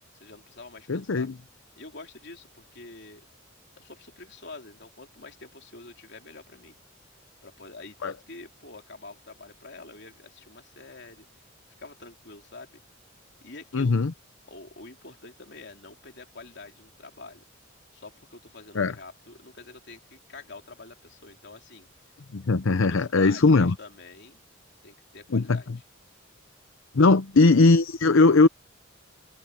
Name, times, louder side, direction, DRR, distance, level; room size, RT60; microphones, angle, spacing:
voice 1, 0.1-1.3 1.8-3.3 3.8-6.8 7.4-11.4 11.8-12.8 13.4-14.0 14.5-17.4 17.9-21.9 22.7-24.4 24.8-25.7, left 3 dB, 55° left, 3.3 m, -46 dB
voice 2, 0.9-1.3 8.0-8.1 13.7-14.1 18.7-18.9 22.3-23.7 25.3-25.6 26.9-28.5, left 3 dB, 75° left, 0.7 m, -19 dB
head